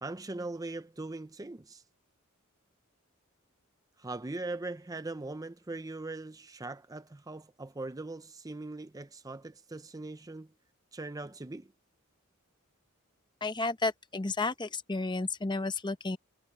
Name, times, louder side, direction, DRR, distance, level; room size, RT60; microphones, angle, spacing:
voice 1, 0.0-1.8 4.0-10.5 10.9-11.7, right 2 dB, 15° right, 0.6 m, -40 dB
voice 2, 13.4-16.2, left 3 dB, 20° left, 0.8 m, -32 dB
head